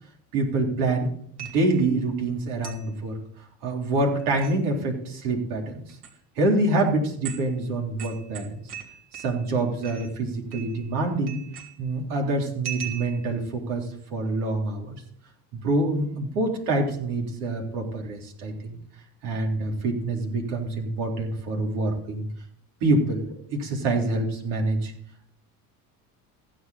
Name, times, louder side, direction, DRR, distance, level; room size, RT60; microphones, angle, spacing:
voice 1, 0.3-1.1 1.4-3.2 3.6-5.8 6.4-8.6 9.1-11.4 11.8-14.9 15.5-18.8 19.2-22.3 22.8-24.9, right 2 dB, 80° right, 0 dB, 3.6 m, -26 dB
sound 1, 1.4-1.9 2.6-2.9 4.2-4.6 5.9-6.1 6.8-6.9 7.2-7.5 8.0-9.5 9.8-10.2 10.5-11.0 11.3-11.9 12.6-13.4, right 9 dB, 55° right, 3.1 m, -39 dB
15.5 x 8.3 x 4.1 m, 0.64 s
hypercardioid pair, 80°, 45 cm